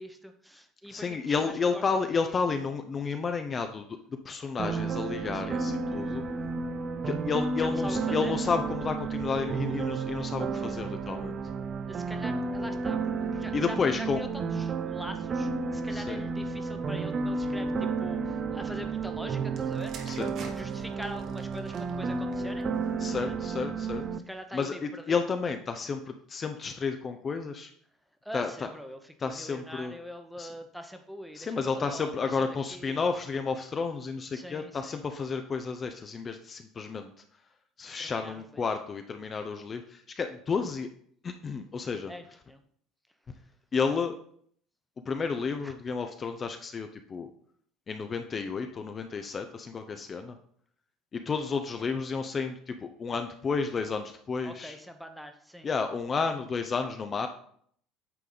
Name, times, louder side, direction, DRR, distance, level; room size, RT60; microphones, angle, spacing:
voice 1, 0.0-2.4 5.3-5.6 7.6-8.3 11.9-19.9 20.5-22.7 23.1-23.4 24.3-25.2 28.2-33.1 34.3-35.1 38.0-38.7 42.1-42.6 45.6-45.7 54.4-55.7, equal, ahead, 6 dB, 0.9 m, -43 dB
voice 2, 0.9-3.8 4.2-6.2 7.0-11.3 13.5-14.2 15.9-16.2 20.1-20.3 23.0-24.0 24.5-27.7 28.3-28.5 29.2-29.9 30.4-30.5 31.4-37.1 37.8-40.9 41.2-42.1 43.7-44.1 45.1-47.3 47.9-50.4 51.1-54.7 55.6-57.3, left 5 dB, 35° left, 6 dB, 0.6 m, -31 dB
sound 1, 4.6-24.2, right 4 dB, 40° right, 0.4 m, -32 dB
sound 2, 19.5-23.3 24.1-24.4, right 4 dB, 55° right, 1.2 m, -49 dB
8.4 x 3.5 x 3.9 m, 0.62 s
supercardioid pair, 95°, 0 cm